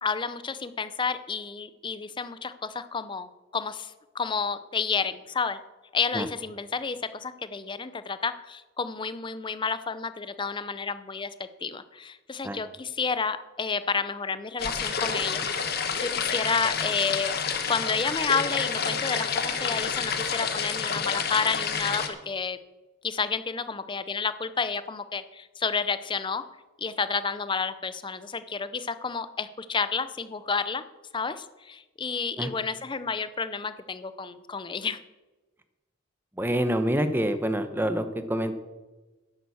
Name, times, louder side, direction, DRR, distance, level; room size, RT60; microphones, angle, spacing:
voice 1, 0.0-5.6 5.9-11.3 11.6-17.3 17.7-22.6 23.0-26.4 26.8-30.8 31.1-35.0, left 5 dB, 25° left, 13 dB, 0.5 m, -30 dB
sound 1, 14.6-22.1, left 6 dB, 50° left, 1.2 m, -29 dB
voice 2, 36.4-38.5, equal, 10° right, 9 dB, 0.9 m, -26 dB
10.5 x 9.3 x 7.0 m, 1.2 s
head